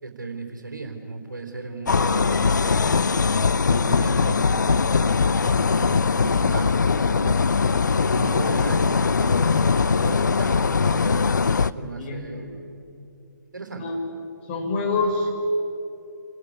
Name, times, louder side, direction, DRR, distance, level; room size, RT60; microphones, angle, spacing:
voice 1, 0.0-2.8 3.2-7.4 8.0-11.2 11.5-12.6 13.5-13.9, right 3 dB, 65° right, 3 dB, 3.4 m, -36 dB
sound 1, 1.9-11.7, left 5 dB, 65° left, 0.6 m, -21 dB
voice 2, 11.8-12.5 13.8-14.0 14.5-15.3, left 3 dB, 35° left, 1 dB, 5.8 m, -27 dB
27.5 x 20.0 x 9.5 m, 2.7 s
figure-of-eight pair, 130°, 11 cm